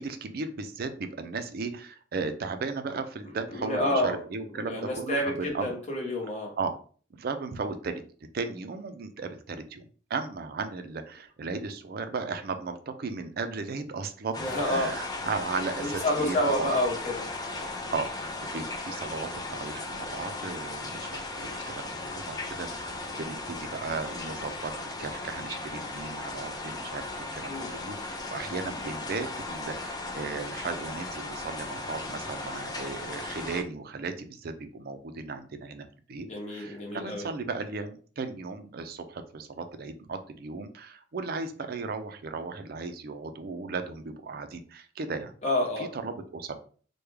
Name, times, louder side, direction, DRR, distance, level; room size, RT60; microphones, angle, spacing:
voice 1, 0.0-5.7 6.6-6.7 7.1-8.0 8.3-16.7 17.9-45.3 45.8-46.6, right 4 dB, 50° right, 8 dB, 0.4 m, -36 dB
voice 2, 3.5-4.2 4.6-6.5 14.4-15.0 15.8-17.3 27.5-27.7 36.3-37.3 45.4-45.9, left 1 dB, 35° left, 0 dB, 0.9 m, -29 dB
sound 1, 14.3-33.6, left 2 dB, 20° left, 0.4 m, -37 dB
3.4 x 2.2 x 3.2 m, 0.43 s
head